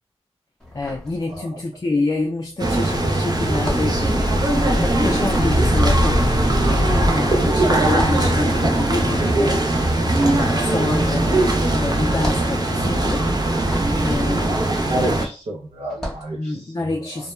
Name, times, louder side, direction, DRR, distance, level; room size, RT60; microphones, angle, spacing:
sound 1, 0.6-1.8 2.1-15.3 15.8-16.4, equal, 5° left, 0.8 m, -34 dB
voice 1, 0.7-4.3 4.8-6.4 7.1-9.6 10.3-13.3 14.0-14.7 16.3-17.3, left 2 dB, 30° left, 3 dB, 0.3 m, -27 dB
sound 2, 2.6-15.3, right 1 dB, 35° right, 0.5 m, -20 dB
sound 3, 3.8-7.1, left 1 dB, 70° left, 0.6 m, -24 dB
voice 2, 14.8-16.7 17.1-17.3, right 1 dB, 85° right, -2 dB, 0.5 m, -29 dB
2.2 x 2.1 x 3.1 m, 0.36 s
wide cardioid pair, 80°, 11 cm